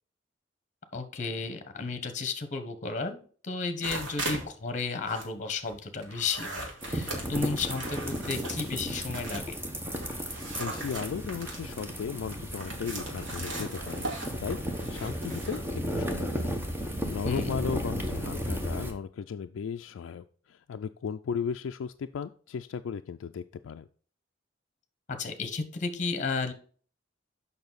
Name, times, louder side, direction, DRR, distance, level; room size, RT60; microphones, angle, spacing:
voice 1, 0.9-9.6 17.2-17.6 25.1-26.5, left 4 dB, 40° left, 8 dB, 1.1 m, -33 dB
sound 1, 3.8-4.5 4.8-9.6 9.9-15.6, right 2 dB, 75° right, 2.3 m, -39 dB
sound 2, 6.8-18.9, equal, 10° right, 1.1 m, -34 dB
voice 2, 10.6-14.1 14.4-15.6 15.9-16.6 17.0-23.9, left 6 dB, 85° left, 8 dB, 0.3 m, -36 dB
6.9 x 5.6 x 4.0 m, 0.43 s
head